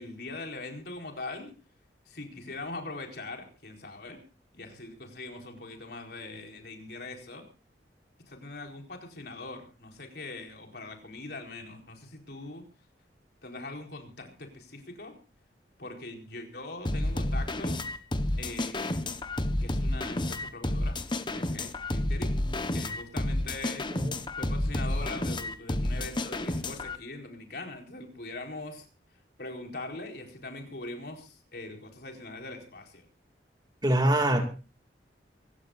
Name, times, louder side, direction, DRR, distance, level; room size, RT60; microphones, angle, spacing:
voice 1, 0.0-1.5 2.1-4.2 4.5-7.5 8.3-12.7 13.4-15.2 15.8-17.9 18.4-19.0 19.6-22.4 22.7-23.9 24.4-28.9 29.4-33.0, left 2 dB, 60° left, 3 dB, 4.4 m, -42 dB
sound 1, 16.9-27.0, left 1 dB, 25° left, 1.1 m, -30 dB
voice 2, 33.8-34.4, right 1 dB, 25° right, 5 dB, 2.5 m, -24 dB
25.0 x 16.0 x 2.6 m, 0.34 s
head